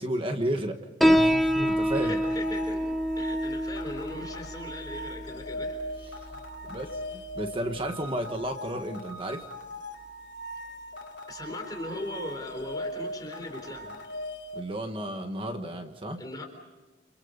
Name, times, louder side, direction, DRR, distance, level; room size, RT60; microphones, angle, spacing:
voice 1, 0.0-2.2 6.1-6.3 6.7-9.5 14.5-16.2, right 1 dB, 30° right, 5 dB, 1.4 m, -33 dB
Piano, 1.0-8.1, equal, ahead, 1.3 m, -28 dB
sound 1, 1.1-14.6, equal, 85° left, 3.1 m, -40 dB
voice 2, 1.9-5.8 11.3-14.1 16.2-16.5, left 2 dB, 20° left, 4 dB, 4.0 m, -39 dB
29.5 x 27.5 x 5.4 m, 1.2 s
head